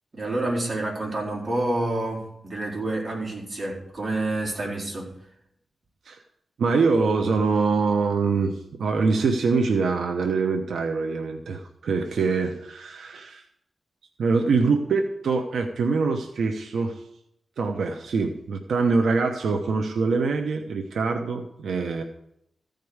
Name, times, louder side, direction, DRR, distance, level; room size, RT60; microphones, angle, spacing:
voice 1, 0.1-5.1, right 2 dB, 35° right, -3 dB, 4.3 m, -28 dB
voice 2, 6.6-8.5 8.8-13.4 14.2-17.0 17.6-22.0, right 4 dB, 85° right, 4 dB, 1.0 m, -24 dB
15.0 x 5.3 x 8.0 m, 0.75 s
wide cardioid pair, 110°, 0 cm